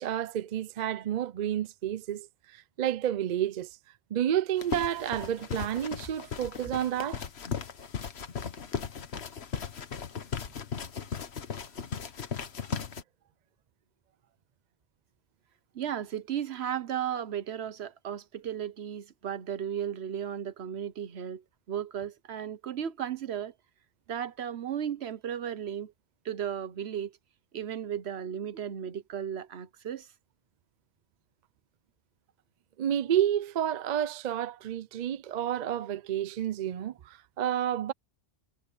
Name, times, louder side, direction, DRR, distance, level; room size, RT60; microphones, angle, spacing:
voice 1, 0.0-3.8 4.1-7.3 32.8-37.9, right 10 dB, 50° right, 0.6 m, -30 dB
sound 1, 4.6-13.0, left 6 dB, 75° left, 1.4 m, -37 dB
voice 2, 15.7-21.4 21.7-23.5 24.1-25.9 26.2-27.1 27.5-30.1, right 9 dB, 75° right, 1.1 m, -35 dB
omnidirectional pair, 1.1 m